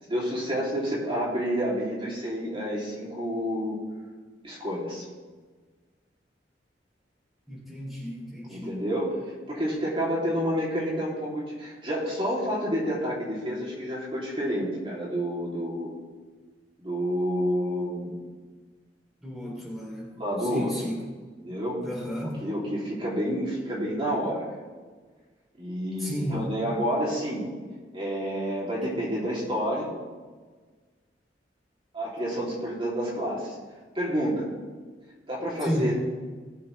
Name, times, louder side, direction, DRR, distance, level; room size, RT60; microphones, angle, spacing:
voice 1, 0.1-3.8 4.4-5.0 8.5-9.1 9.5-15.9 16.8-18.1 20.1-20.7 21.4-21.8 22.4-24.6 25.6-27.4 27.9-29.9 31.9-33.5 33.9-34.5 35.3-36.0, equal, 30° right, -6 dB, 3.0 m, -29 dB
voice 2, 7.5-8.8 19.2-21.1 21.8-22.4 26.0-26.5 35.6-36.0, equal, ahead, -5 dB, 3.2 m, -33 dB
19.0 x 7.4 x 3.3 m, 1.4 s
head